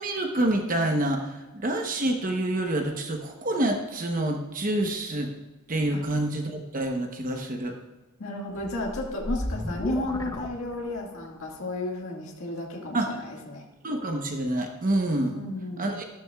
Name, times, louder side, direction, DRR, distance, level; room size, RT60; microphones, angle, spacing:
voice 1, 0.0-5.3 5.7-7.8 12.9-13.2 13.8-15.4 15.8-16.0, right 1 dB, 40° right, 3 dB, 0.9 m, -27 dB
voice 2, 8.2-13.6 15.3-16.0, left 1 dB, 70° left, -1 dB, 1.8 m, -33 dB
sound 1, 8.5-11.3, left 1 dB, 15° left, 0.7 m, -34 dB
12.5 x 12.0 x 2.3 m, 1.2 s
head